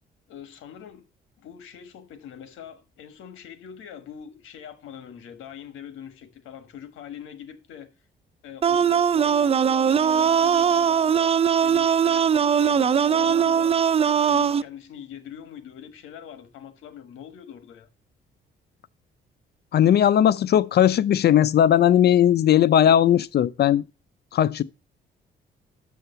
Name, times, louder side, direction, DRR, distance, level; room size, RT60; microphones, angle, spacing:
voice 1, 0.3-1.0 1.4-7.9 8.4-11.3 11.6-12.3 12.6-13.8 14.2-17.9, left 9 dB, 85° left, 1.4 m, -42 dB
sound 1, 8.6-14.6, right 8 dB, 30° right, 0.4 m, -20 dB
voice 2, 19.7-23.8 24.3-24.6, left 10 dB, 55° left, 0.5 m, -18 dB
6.5 x 6.5 x 6.7 m
cardioid pair, 90°, 20 cm